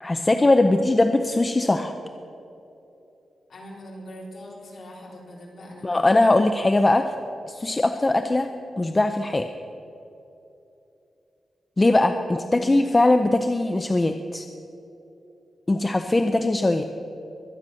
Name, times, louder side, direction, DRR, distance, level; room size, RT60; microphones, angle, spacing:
voice 1, 0.0-1.9 5.8-7.1 7.5-8.5 8.8-9.5 11.8-14.5 15.7-16.8, left 2 dB, 20° left, 7 dB, 0.5 m, -20 dB
voice 2, 3.5-6.2 12.4-12.7, equal, 45° left, -3 dB, 4.0 m, -41 dB
23.0 x 9.1 x 6.3 m, 3.0 s
wide cardioid pair, 170°, 0 cm